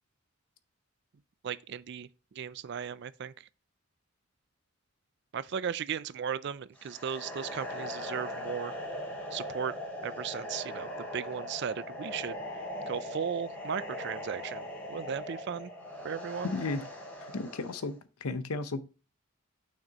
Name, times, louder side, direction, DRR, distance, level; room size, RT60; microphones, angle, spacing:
voice 1, 1.4-2.1 2.4-3.3 5.3-8.7 9.3-9.7 10.0-12.4 12.9-15.7 16.0-16.5, right 7 dB, 50° right, 0.3 m, -36 dB
sound 1, 6.8-17.9, left 1 dB, 10° left, 2.6 m, -40 dB
voice 2, 16.4-16.8 17.3-18.8, left 3 dB, 80° left, 0.7 m, -34 dB
6.5 x 6.1 x 2.9 m
head